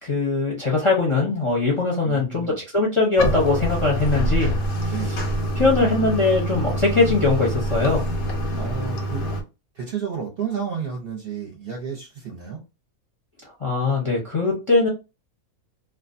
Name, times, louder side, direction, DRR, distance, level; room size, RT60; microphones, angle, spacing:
voice 1, 0.0-4.5 5.6-8.0 13.6-14.9, left 3 dB, 30° left, -3 dB, 0.6 m, -21 dB
voice 2, 2.0-2.6 4.8-5.2 8.5-9.2 9.7-12.6, right 6 dB, 50° right, 0 dB, 0.8 m, -31 dB
Bathtub (filling or washing), 3.2-9.4, right 1 dB, 90° left, 1.2 m, -25 dB
2.5 x 2.3 x 2.5 m, 0.28 s
omnidirectional pair, 1.5 m